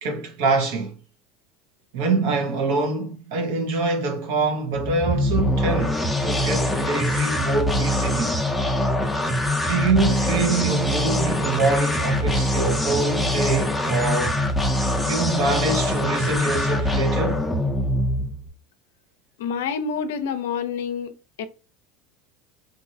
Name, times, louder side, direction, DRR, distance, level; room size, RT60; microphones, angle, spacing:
voice 1, 0.0-0.9 1.9-8.4 9.7-14.4 15.0-17.4, right 3 dB, 75° right, 0.9 m, -25 dB
sound 1, 4.7-18.5, left 1 dB, 5° left, 0.5 m, -23 dB
voice 2, 19.4-21.1 21.4-21.5, left 6 dB, 85° left, 0.5 m, -27 dB
3.0 x 2.6 x 2.7 m
hypercardioid pair, 95°, 0 cm